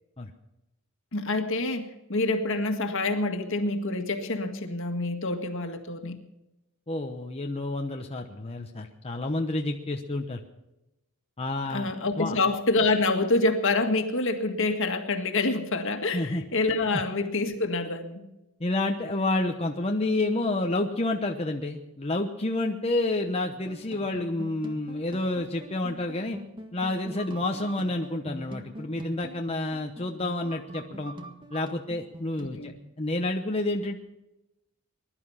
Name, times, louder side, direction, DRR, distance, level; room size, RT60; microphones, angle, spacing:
voice 1, 1.1-6.2 11.7-18.3 32.4-32.7, left 2 dB, 60° left, 6 dB, 1.9 m, -27 dB
voice 2, 6.9-10.4 11.4-12.4 16.1-16.4 18.6-26.4 26.7-31.1 31.5-34.0, left 2 dB, 25° left, 3 dB, 1.0 m, -29 dB
sound 1, 23.5-32.4, equal, 20° right, 1.6 m, -43 dB
21.0 x 12.0 x 5.7 m, 0.93 s
head